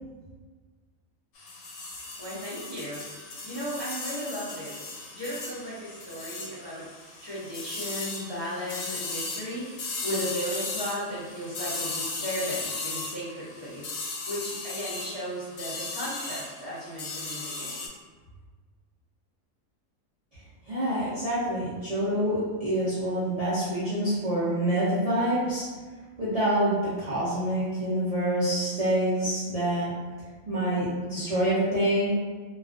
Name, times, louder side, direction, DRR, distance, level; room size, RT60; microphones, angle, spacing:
sound 1, 1.4-17.9, left 3 dB, 75° left, 1.0 m, -37 dB
voice 1, 2.2-3.1 3.4-4.8 5.1-6.9 7.2-17.9, equal, 45° left, -12 dB, 0.3 m, -35 dB
voice 2, 20.7-25.6 26.2-29.9 30.5-32.1, right 1 dB, 50° right, -12 dB, 0.4 m, -26 dB
2.4 x 2.3 x 2.4 m, 1.4 s
omnidirectional pair, 1.5 m